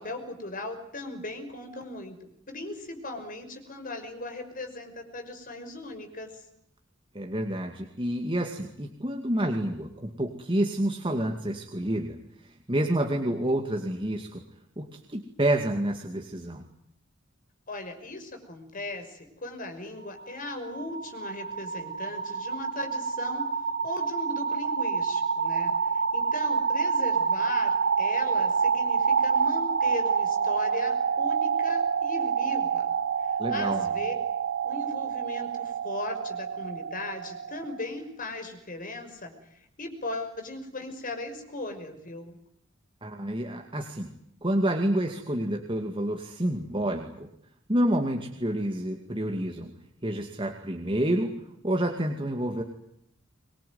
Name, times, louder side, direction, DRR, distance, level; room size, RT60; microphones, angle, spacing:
voice 1, 0.0-6.4 17.7-23.5 23.8-32.9 33.5-34.1 34.6-39.3 39.8-42.4, left 2 dB, 45° left, 6 dB, 5.8 m, -38 dB
voice 2, 7.1-12.2 12.7-14.4 14.8-16.6 33.4-33.9 43.0-44.1 44.4-47.3 47.7-49.7 50.0-51.3 51.6-52.6, right 1 dB, 25° right, 3 dB, 2.4 m, -28 dB
sound 1, 20.0-37.9, right 6 dB, 75° right, 5.1 m, -28 dB
24.5 x 22.0 x 9.5 m, 0.74 s
head